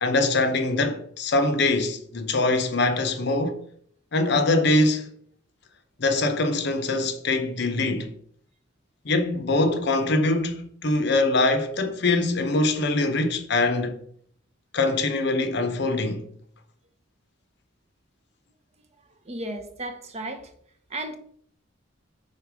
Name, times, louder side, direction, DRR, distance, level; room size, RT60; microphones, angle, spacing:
voice 1, 0.0-3.6 4.1-5.1 6.0-8.1 9.0-14.0 14.7-16.3, left 2 dB, 55° left, 0.8 m, -23 dB
voice 2, 19.2-20.5 20.9-21.2, right 1 dB, 35° right, 0.7 m, -34 dB
5.5 x 4.0 x 4.7 m
head